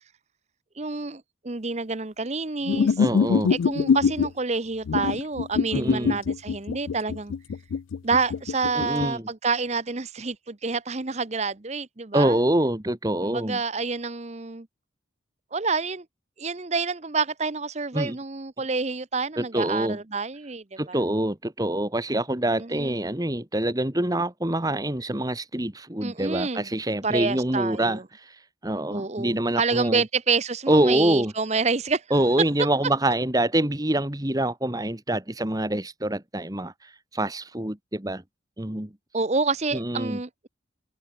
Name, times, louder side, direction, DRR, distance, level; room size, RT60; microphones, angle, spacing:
voice 1, 0.8-3.0 3.5-7.3 8.0-12.4 13.2-14.7 15.5-16.0 16.4-21.0 22.5-23.1 26.0-26.7 27.0-28.0 28.9-32.0 39.1-40.5, right 4 dB, 35° right, 0.8 m, -28 dB
sound 1, 2.7-4.3 4.9-9.1, left 6 dB, 80° left, 0.4 m, -23 dB
voice 2, 3.0-3.5 5.7-6.2 8.7-9.3 12.1-13.6 17.9-18.2 19.4-20.0 20.8-28.3 28.6-30.0 30.7-31.3 32.1-38.2 38.6-38.9 39.7-40.2, right 1 dB, 20° right, 1.5 m, -25 dB
head